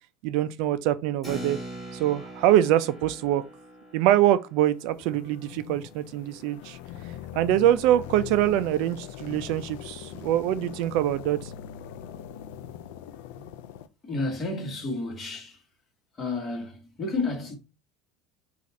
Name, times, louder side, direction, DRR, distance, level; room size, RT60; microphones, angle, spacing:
voice 1, 0.2-1.6 1.9-3.4 3.9-6.8 7.3-11.5, right 12 dB, 65° right, 0.3 m, -24 dB
Keyboard (musical), 1.2-7.3, right 1 dB, 5° left, 2.2 m, -43 dB
sound 1, 4.6-13.9, left 10 dB, 80° left, 0.4 m, -41 dB
voice 2, 14.0-15.7 16.1-17.5, left 3 dB, 25° left, 1.4 m, -31 dB
4.1 x 2.4 x 4.2 m
supercardioid pair, 140°, 0 cm